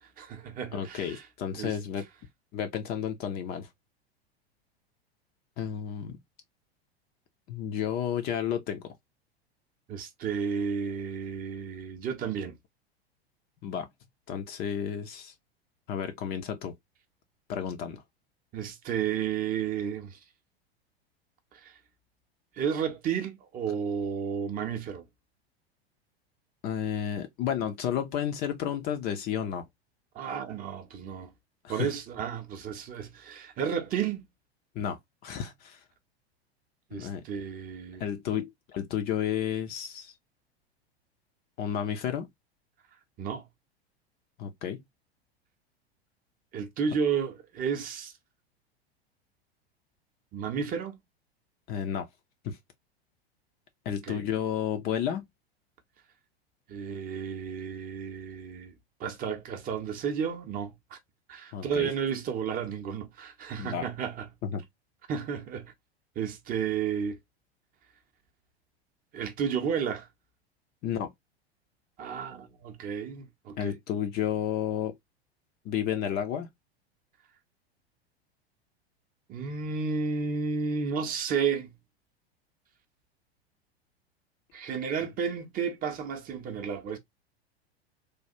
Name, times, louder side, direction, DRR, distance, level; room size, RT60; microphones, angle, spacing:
voice 1, 0.2-1.2 1.6-1.8 9.9-12.6 18.5-20.2 21.5-21.8 22.6-25.0 30.1-31.3 31.7-34.3 36.9-38.0 43.2-43.5 46.5-48.1 50.3-51.0 54.0-54.2 56.7-58.7 59.0-61.0 61.3-64.3 65.1-65.7 66.2-67.2 69.1-70.1 72.0-73.7 79.3-81.7 84.5-87.0, right 7 dB, 25° right, 0.7 m, -32 dB
voice 2, 0.7-2.0 2.5-3.7 5.6-6.2 7.5-8.9 13.6-13.9 14.3-15.3 15.9-16.7 17.5-18.0 26.6-29.7 31.6-31.9 34.8-35.8 36.9-37.2 38.0-40.1 41.6-42.3 44.4-44.8 51.7-52.1 52.4-52.6 53.9-55.2 61.5-61.9 63.6-63.9 64.4-64.6 70.8-71.1 73.6-75.0 75.6-76.5, left 9 dB, 30° left, 0.5 m, -32 dB
3.3 x 2.3 x 2.6 m
figure-of-eight pair, 90°, 32 cm